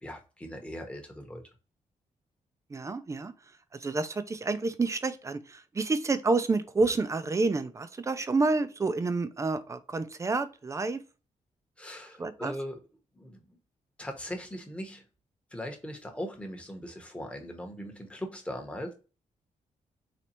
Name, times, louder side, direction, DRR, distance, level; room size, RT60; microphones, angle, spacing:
voice 1, 0.0-1.4 11.8-12.8 13.1-13.6 14.0-15.0 15.5-18.9, equal, 10° left, 0.9 m, -39 dB
voice 2, 2.7-3.3 3.8-11.0 12.2-12.5, right 3 dB, 20° right, 0.4 m, -29 dB
4.2 x 3.2 x 2.9 m
wide cardioid pair, 140°, 14 cm